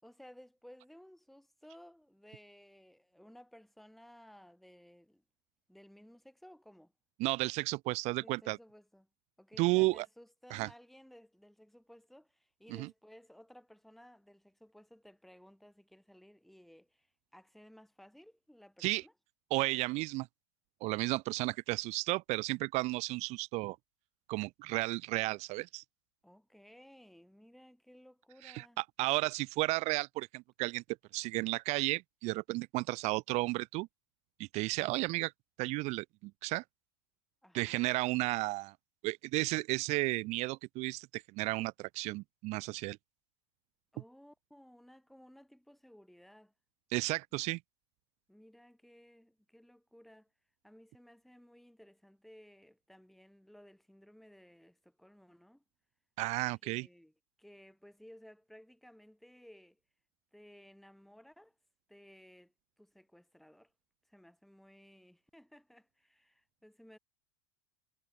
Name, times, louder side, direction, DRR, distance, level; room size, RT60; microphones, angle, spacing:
voice 1, 0.0-5.2 5.7-6.9 8.2-9.1 9.4-19.1 26.2-28.8 37.4-37.9 43.9-46.5 47.4-47.5 48.3-50.3 50.6-55.6 56.6-59.8 60.3-61.6 61.9-63.7 64.1-67.0, equal, ahead, 5.6 m, -58 dB
voice 2, 7.2-8.6 9.6-10.1 10.5-10.7 12.8-12.9 18.8-19.0 19.5-20.3 20.8-23.8 24.3-25.8 28.4-30.8 31.1-33.9 34.4-35.3 35.6-36.6 37.5-38.7 39.0-43.0 46.9-47.6 56.2-56.9, right 22 dB, 45° right, 0.4 m, -33 dB
hypercardioid pair, 110°, 15 cm